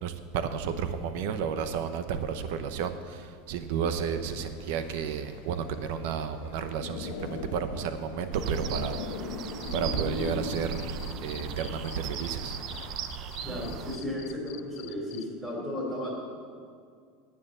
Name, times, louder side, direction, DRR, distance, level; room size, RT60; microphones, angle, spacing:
voice 1, 0.0-9.0 9.7-12.6, right 7 dB, 65° right, 10 dB, 0.8 m, -32 dB
sound 1, 4.2-13.0, left 4 dB, 85° left, 1.3 m, -40 dB
sound 2, 8.3-14.0, right 8 dB, 35° right, 0.5 m, -37 dB
Cricket, 9.6-15.2, left 18 dB, 65° left, 0.5 m, -46 dB
voice 2, 13.4-16.2, left 1 dB, 10° right, -2 dB, 2.9 m, -34 dB
9.8 x 8.8 x 7.6 m, 2.1 s
supercardioid pair, 170°, 0 cm